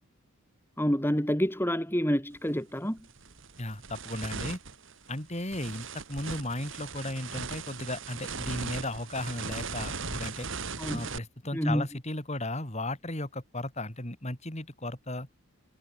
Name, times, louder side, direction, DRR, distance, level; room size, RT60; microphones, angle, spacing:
voice 1, 0.8-3.0 10.8-11.1 11.5-11.8, equal, 10° left, 3.3 m, -28 dB
sound 1, 2.3-2.5 3.0-11.2, right 4 dB, 60° right, 2.9 m, -38 dB
voice 2, 3.6-4.6 5.1-10.5 10.9-15.3, left 1 dB, 30° left, 4.0 m, -35 dB
head